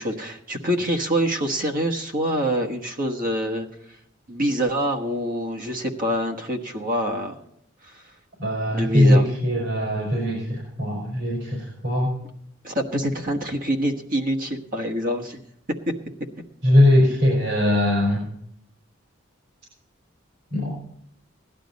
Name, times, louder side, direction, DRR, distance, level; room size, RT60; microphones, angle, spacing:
voice 1, 0.0-3.7 4.3-7.4 7.8-8.0 8.7-9.2 12.6-15.4 15.7-16.0, equal, 45° right, 2 dB, 1.4 m, -25 dB
voice 2, 8.4-12.1 16.6-18.2 20.5-20.7, left 1 dB, 65° right, -2 dB, 4.8 m, -20 dB
17.0 x 11.5 x 4.1 m, 0.74 s
head